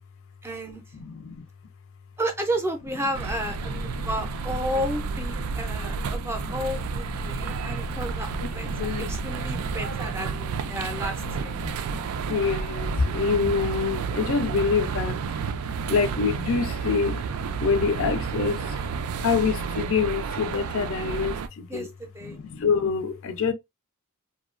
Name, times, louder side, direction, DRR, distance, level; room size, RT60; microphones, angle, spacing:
voice 1, 0.4-0.8 2.2-11.5 14.6-14.8 21.7-22.4, equal, 10° right, 0.4 m, -32 dB
voice 2, 0.9-1.4 3.7-4.1 5.4-15.6 15.9-17.2 17.6-18.8 19.2-21.9 22.2-23.5, left 5 dB, 65° left, 0.4 m, -28 dB
sound 1, 3.1-21.5, right 5 dB, 80° right, 0.3 m, -31 dB
2.7 x 2.2 x 2.4 m
head